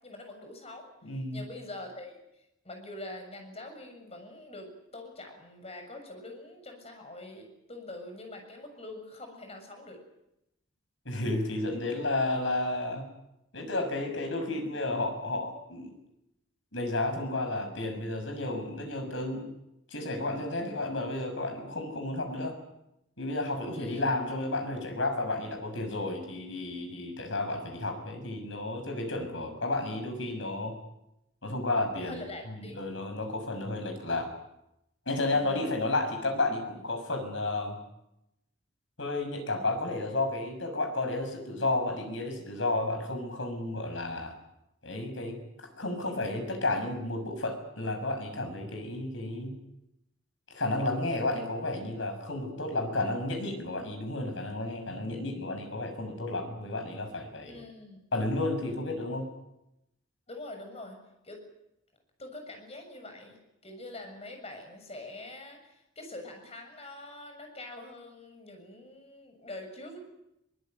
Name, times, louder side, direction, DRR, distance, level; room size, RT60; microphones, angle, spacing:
voice 1, 0.0-0.9 1.3-2.2 2.6-10.0 23.7-24.1 32.0-32.8 35.3-35.7 57.4-58.0 60.3-61.0 61.2-61.4 62.2-70.0, left 2 dB, 30° left, 4 dB, 7.0 m, -44 dB
voice 2, 1.0-1.4 11.0-13.1 13.5-15.9 16.7-19.5 19.9-22.6 23.2-30.8 31.4-32.2 32.5-34.3 35.1-37.8 39.0-44.3 44.8-49.6 50.5-57.6 58.1-59.3, left 2 dB, 70° left, 6 dB, 6.6 m, -32 dB
23.0 x 20.5 x 9.4 m, 0.87 s
head